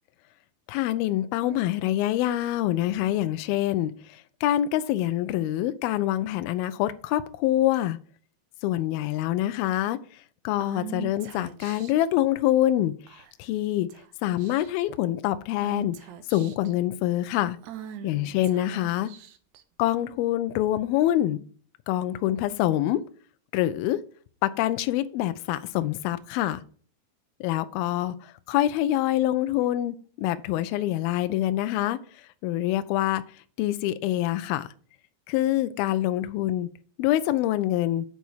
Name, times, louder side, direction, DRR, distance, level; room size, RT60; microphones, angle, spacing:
voice 1, 0.7-8.0 8.6-10.0 10.4-13.9 14.2-16.0 16.3-17.6 18.0-19.1 19.8-21.4 21.9-23.0 23.5-24.0 24.4-26.6 27.4-33.2 33.6-34.7 35.3-36.7 37.0-38.1, left 13 dB, 80° left, 2.4 m, -25 dB
Female speech woman speaking / Whispering, 10.6-12.0 13.1-13.5 13.9-14.1 14.4-14.9 15.6-16.7 17.6-19.6, right 10 dB, 85° right, 1.7 m, -41 dB
8.2 x 4.3 x 6.3 m
omnidirectional pair, 4.7 m